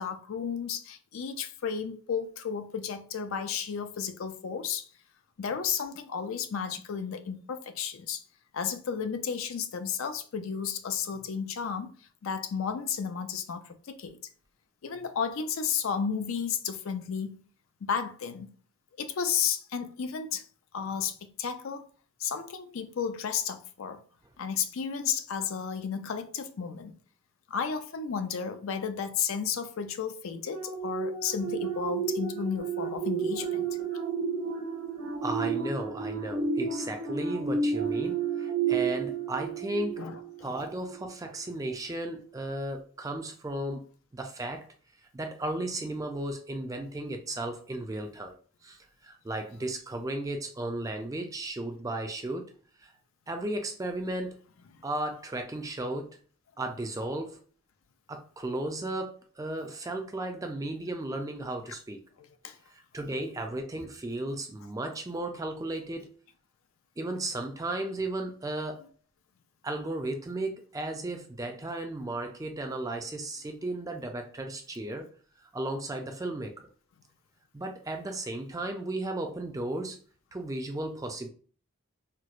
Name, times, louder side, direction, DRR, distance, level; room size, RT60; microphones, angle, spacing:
voice 1, 0.0-4.9 5.4-8.2 8.5-11.9 12.2-14.2 14.8-17.4 17.8-18.5 19.0-20.4 20.7-21.9 22.2-24.0 24.4-27.0 27.5-33.7 40.0-40.5 62.4-62.5, left 7 dB, 70° left, 0.4 m, -33 dB
sound 1, 30.5-40.4 40.8-41.1, right 5 dB, 65° right, 0.9 m, -31 dB
voice 2, 35.2-40.0 40.4-43.9 44.1-44.7 45.1-52.5 52.8-52.9 53.3-54.4 54.8-56.2 56.6-57.4 58.1-62.0 62.7-66.2 67.0-68.9 69.6-75.1 75.5-76.7 77.5-80.0 80.3-81.3, right 2 dB, 15° right, 0.4 m, -35 dB
4.3 x 2.0 x 2.4 m
head